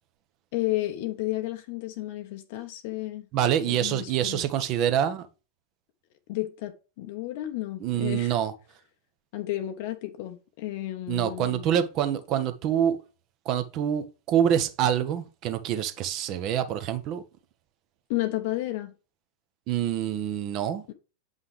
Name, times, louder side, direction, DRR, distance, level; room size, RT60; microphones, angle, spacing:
voice 1, 0.5-3.3 3.6-4.4 6.3-8.4 9.3-11.7 18.1-18.9 20.9-21.0, left 16 dB, 50° left, 0.8 m, -32 dB
voice 2, 3.3-5.3 7.8-8.5 11.1-13.0 13.4-17.2 19.7-20.8, right 10 dB, 40° right, 1.0 m, -26 dB
8.2 x 5.5 x 3.3 m
figure-of-eight pair, 90°, 0 cm